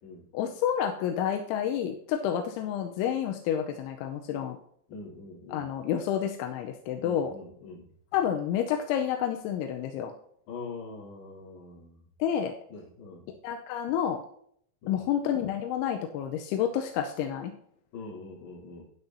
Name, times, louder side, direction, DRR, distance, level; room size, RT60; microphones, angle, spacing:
voice 1, 0.3-4.6 5.5-7.3 8.1-10.1 12.2-12.5 13.4-14.2 14.9-17.5, left 9 dB, 85° left, 3 dB, 3.0 m, -29 dB
voice 2, 4.9-5.7 7.0-7.9 10.5-12.0 12.7-13.3 14.8-15.1 17.9-18.8, left 3 dB, 55° left, -5 dB, 5.0 m, -43 dB
12.5 x 9.9 x 2.8 m, 0.65 s
omnidirectional pair, 5.6 m